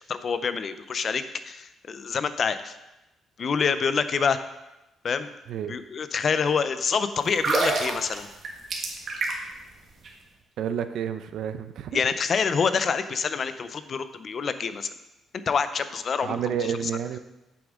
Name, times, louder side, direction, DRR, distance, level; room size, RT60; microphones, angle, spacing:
voice 1, 0.1-2.7 3.4-4.4 5.0-5.3 5.7-8.3 11.9-14.9 15.5-16.4, left 6 dB, 50° left, 12 dB, 0.6 m, -26 dB
sound 1, 7.3-9.6 9.9-10.1, right 3 dB, 55° right, 1.6 m, -27 dB
voice 2, 10.6-12.0 16.2-17.2, right 8 dB, 75° right, 10 dB, 0.6 m, -30 dB
8.6 x 7.1 x 3.7 m, 0.98 s
cardioid pair, 90°, 0 cm